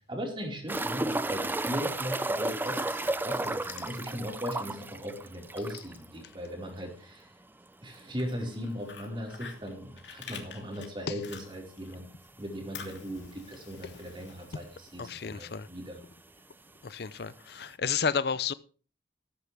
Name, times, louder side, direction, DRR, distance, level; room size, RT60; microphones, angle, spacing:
voice 1, 0.0-2.8 3.2-7.3 7.8-12.1 12.4-16.0, equal, 30° right, 4.7 m, -38 dB
sound 1, 0.7-6.1 6.3-6.4 6.8-6.9 9.7-9.8 11.5-11.6 12.3-12.4 12.7-12.8 13.7-13.8 13.9-14.5 15.5-15.6, right 2 dB, 10° right, 0.5 m, -33 dB
Fire, 8.0-11.9 12.2-15.0, left 6 dB, 80° left, 2.8 m, -48 dB
voice 2, 15.0-15.7 16.8-18.5, left 6 dB, 60° left, 0.6 m, -31 dB
14.0 x 13.5 x 3.5 m
head